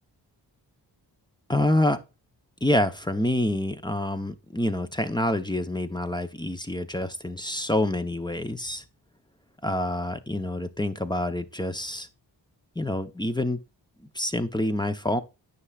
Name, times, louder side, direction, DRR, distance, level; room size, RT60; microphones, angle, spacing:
voice 1, 1.5-2.0 2.6-8.8 9.6-12.1 12.8-13.6 14.1-15.2, left 1 dB, 10° left, 0.8 m, -27 dB
9.6 x 5.7 x 2.4 m
cardioid pair, 40°, 45 cm